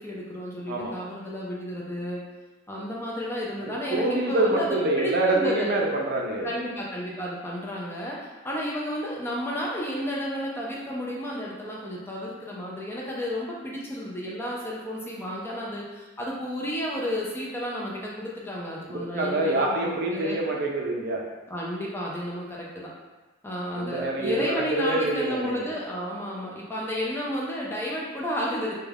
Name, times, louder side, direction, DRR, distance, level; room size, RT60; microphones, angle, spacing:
voice 1, 0.0-2.2 2.7-5.7 6.4-20.4 21.5-22.9 23.4-28.7, equal, 10° left, -4 dB, 0.3 m, -32 dB
voice 2, 3.6-6.5 18.9-21.2 23.7-25.6, right 2 dB, 50° right, -1 dB, 0.4 m, -26 dB
2.3 x 2.2 x 3.3 m, 1.2 s
head